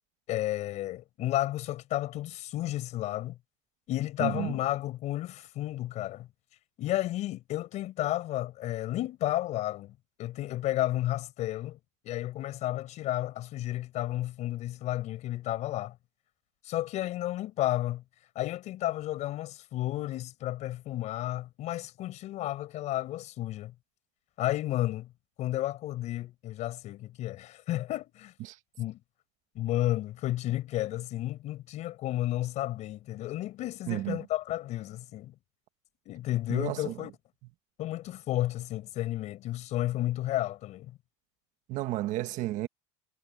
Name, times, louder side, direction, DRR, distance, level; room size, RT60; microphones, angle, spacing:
voice 1, 0.3-3.4 3.9-6.3 6.8-11.8 12.0-16.0 16.6-18.0 18.3-23.7 24.4-25.1 25.4-28.3 28.8-29.0 29.5-35.3 36.0-37.1 37.8-40.9, left 15 dB, 45° left, 5.1 m, -32 dB
voice 2, 4.2-4.5 28.4-28.6 33.9-34.2 36.5-36.9 41.7-42.7, right 16 dB, 50° right, 1.5 m, -32 dB
cardioid pair, 150°, 16 cm